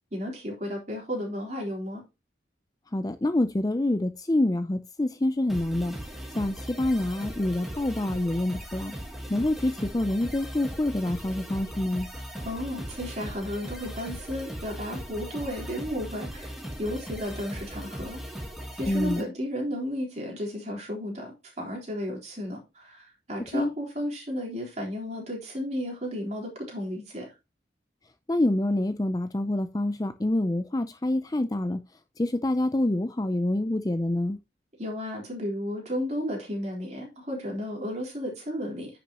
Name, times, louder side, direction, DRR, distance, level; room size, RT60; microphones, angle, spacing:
voice 1, 0.1-2.0 12.4-16.5 16.8-18.2 18.7-27.3 34.8-39.0, equal, 40° right, 3.7 m, -33 dB
voice 2, 2.9-5.9 6.4-8.9 9.3-12.1 18.9-19.3 23.5-23.7 28.3-31.8 32.2-34.4, left 1 dB, 20° left, 0.5 m, -26 dB
sound 1, 5.5-19.2, equal, ahead, 1.6 m, -38 dB
10.0 x 6.1 x 2.9 m
head